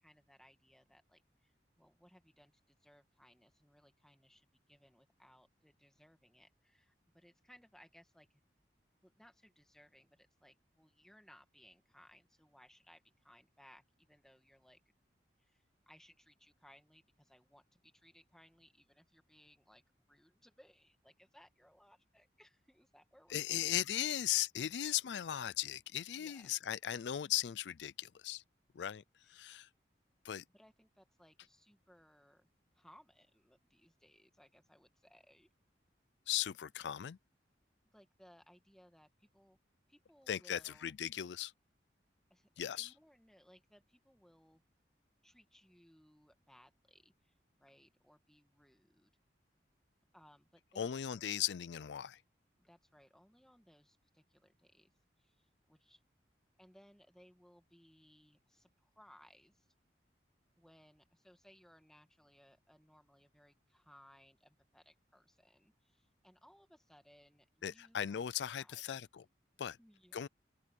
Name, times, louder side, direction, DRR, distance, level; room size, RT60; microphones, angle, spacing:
voice 1, 0.0-8.4 9.0-14.8 15.4-19.8 20.1-23.8 26.1-26.6 29.2-29.6 30.5-32.5 32.7-35.5 37.9-39.6 39.9-41.0 42.3-42.5 42.8-44.6 45.2-49.1 50.1-50.9 52.6-54.9 55.2-56.0 56.6-59.7 60.6-68.2 68.6-69.0 69.8-70.2, equal, 5° left, 1.6 m, -65 dB
voice 2, 23.3-28.4 28.7-29.0 29.3-29.7 30.2-30.4 36.3-37.2 40.3-41.5 42.6-42.9 50.8-52.2 67.6-69.2 69.6-69.8 70.1-70.3, left 11 dB, 80° left, 0.4 m, -37 dB
head